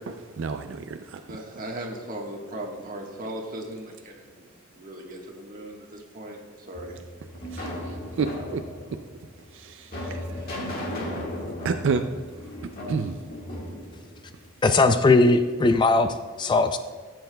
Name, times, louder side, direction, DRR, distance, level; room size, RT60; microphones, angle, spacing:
voice 1, 0.0-1.2 7.5-8.6 8.9-9.0 9.5-10.5 11.6-12.0 12.9-13.1, right 5 dB, 65° right, 7 dB, 0.4 m, -30 dB
voice 2, 1.3-4.5 4.7-6.4 6.7-7.3, right 1 dB, 40° right, 0 dB, 1.4 m, -38 dB
sound 1, 6.7-14.9, left 1 dB, 45° left, 1.7 m, -36 dB
voice 3, 14.6-16.8, left 3 dB, 20° left, 8 dB, 0.3 m, -19 dB
15.0 x 7.8 x 2.3 m, 1.5 s
head